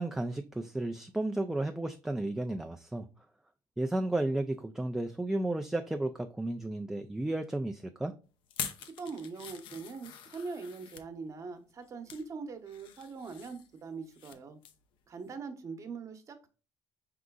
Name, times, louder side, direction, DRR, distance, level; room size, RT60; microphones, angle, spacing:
voice 1, 0.0-3.1 3.8-8.1, right 2 dB, 5° right, 0.3 m, -33 dB
sound 1, 8.5-11.1 11.7-12.3 12.7-14.4 14.6-14.9 15.3-15.4, left 8 dB, 75° left, 0.6 m, -44 dB
voice 2, 8.8-14.6 15.1-16.5, right 4 dB, 35° right, 0.9 m, -42 dB
4.9 x 3.7 x 2.3 m
cardioid pair, 115°, 9 cm